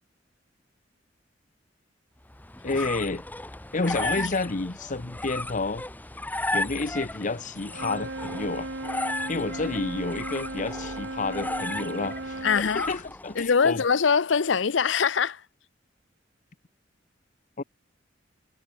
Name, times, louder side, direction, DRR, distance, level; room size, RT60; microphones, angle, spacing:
sound 1, 2.3-13.5, left 2 dB, 10° left, 1.1 m, -35 dB
voice 1, 2.6-3.2 3.7-5.8 6.5-8.7 9.3-13.8 17.6-17.7, left 3 dB, 45° left, 0.9 m, -30 dB
Wind instrument woodwind instrument, 7.7-12.6, right 2 dB, 70° right, 3.3 m, -36 dB
voice 2, 12.4-12.9 13.4-15.4, left 6 dB, 85° left, 0.7 m, -23 dB
head